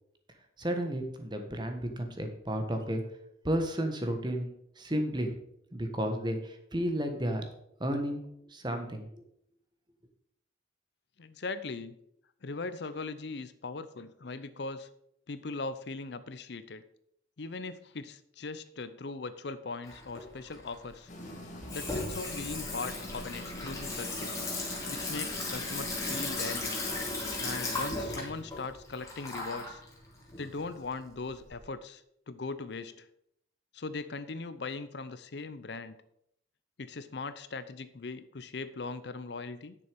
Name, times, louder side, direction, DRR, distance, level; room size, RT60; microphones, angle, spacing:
voice 1, 0.6-3.0 3.4-4.5 4.8-5.3 5.7-7.4 7.8-8.2 8.5-9.1, right 1 dB, 25° right, 6 dB, 1.3 m, -32 dB
voice 2, 11.2-12.0 12.4-14.9 15.3-16.8 17.4-21.1 21.7-24.3 24.9-26.8 27.4-29.8 30.4-33.1 33.7-36.0 36.8-39.8, left 3 dB, 60° left, 13 dB, 0.6 m, -39 dB
Water tap faucet / Sink (filling or washing), 19.8-31.6, left 2 dB, 15° left, 2.4 m, -37 dB
sound 1, 21.1-26.3, left 1 dB, 40° left, 2.3 m, -45 dB
10.0 x 6.8 x 5.1 m, 0.75 s
head